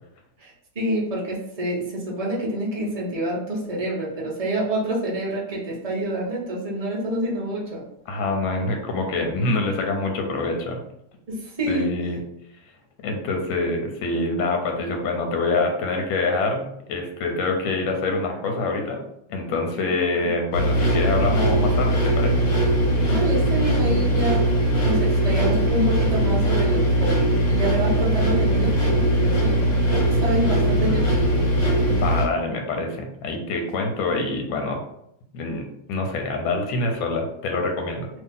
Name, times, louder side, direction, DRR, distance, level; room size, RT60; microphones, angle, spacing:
voice 1, 0.4-7.8 11.3-11.9 20.2-20.3 23.1-24.5 24.8-31.6, right 1 dB, 35° right, -4 dB, 0.5 m, -27 dB
voice 2, 8.1-10.8 11.7-12.2 13.0-16.6 16.9-19.0 19.3-22.4 31.9-34.8 35.3-38.1, left 3 dB, 85° left, 3 dB, 1.4 m, -25 dB
sound 1, 20.5-32.2, right 1 dB, 70° left, 1.7 m, -20 dB
2.8 x 2.8 x 3.6 m, 0.75 s
omnidirectional pair, 2.1 m